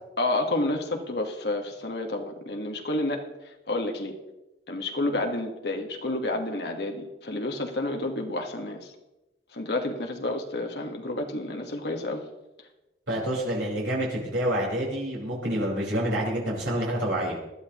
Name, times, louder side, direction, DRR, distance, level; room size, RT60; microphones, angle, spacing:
voice 1, 0.2-3.2 3.7-4.1 4.7-8.9 9.5-12.2, left 2 dB, 60° left, 2 dB, 1.5 m, -30 dB
voice 2, 13.1-17.4, right 1 dB, 90° right, -4 dB, 4.8 m, -28 dB
20.0 x 12.0 x 3.0 m, 1.0 s
head